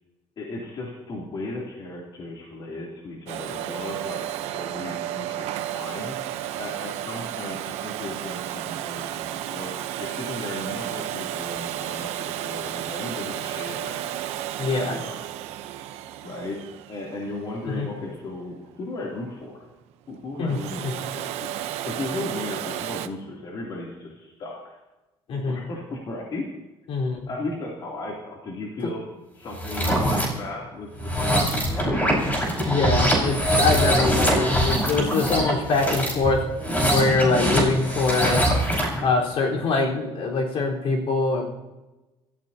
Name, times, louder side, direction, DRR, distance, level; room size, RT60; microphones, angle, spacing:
voice 1, 0.4-14.2 14.7-15.1 16.2-16.6 16.9-19.6 20.1-24.8 25.5-26.4 27.3-29.0 29.3-32.2, left 2 dB, 45° left, -3 dB, 3.0 m, -36 dB
Domestic sounds home sounds, 3.3-18.0 20.3-23.1, right 12 dB, 90° right, 0.9 m, -33 dB
voice 2, 14.6-14.9 17.6-17.9 20.4-20.6 20.8-20.9 25.3-25.6 26.9-27.2 32.6-36.4 36.9-38.5 39.0-41.4, left 3 dB, 60° left, -2 dB, 4.3 m, -23 dB
sound 1, 29.5-30.3 30.9-39.0, right 1 dB, 15° left, 5.2 m, -23 dB
27.0 x 14.5 x 2.9 m, 1.1 s
cardioid pair, 145°, 11 cm